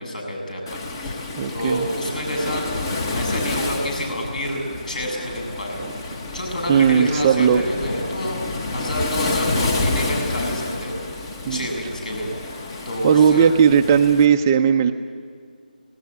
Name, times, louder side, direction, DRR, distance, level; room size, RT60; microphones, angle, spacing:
voice 1, 0.0-2.9 3.1-12.3 12.8-13.5, equal, 55° left, 2 dB, 7.4 m, -28 dB
Waves surf, 0.7-14.3, left 2 dB, 25° left, 1.4 m, -29 dB
voice 2, 1.4-1.9 5.8-5.9 6.7-7.6 11.5-11.7 13.0-14.9, right 7 dB, 20° right, 6 dB, 0.5 m, -17 dB
19.0 x 18.5 x 8.6 m, 2.2 s
figure-of-eight pair, 165°, 5 cm